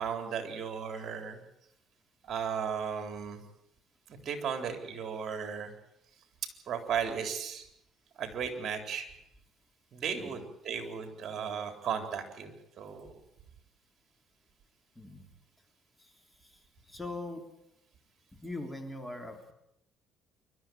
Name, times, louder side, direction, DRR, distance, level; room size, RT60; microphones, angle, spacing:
voice 1, 0.0-1.4 2.3-3.4 4.3-5.7 6.7-7.7 8.2-9.1 9.9-13.1, right 7 dB, 50° right, 6 dB, 3.9 m, -35 dB
voice 2, 14.9-15.3 16.0-16.1 16.4-16.6 16.9-17.4 18.4-19.5, left 2 dB, 10° left, 5 dB, 3.5 m, -41 dB
26.5 x 13.0 x 9.3 m, 0.81 s
cardioid pair, 105°, 0 cm